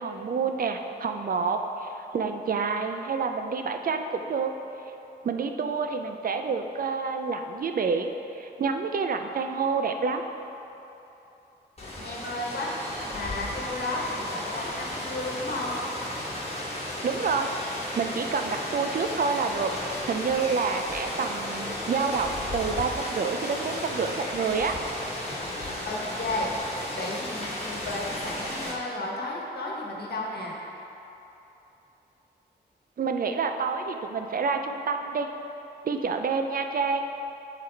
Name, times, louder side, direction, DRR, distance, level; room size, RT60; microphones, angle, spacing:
voice 1, 0.0-4.5 5.2-10.2 17.0-17.5 17.9-24.7 33.0-35.3 35.8-37.0, right 5 dB, 55° right, 5 dB, 0.4 m, -28 dB
Rain, 11.8-28.7, left 1 dB, 35° left, 1.3 m, -34 dB
voice 2, 12.0-12.7 13.1-15.8 25.9-26.5 27.0-30.5, left 2 dB, 65° left, -2 dB, 1.2 m, -33 dB
9.8 x 4.0 x 4.4 m, 3.0 s
wide cardioid pair, 140°, 18 cm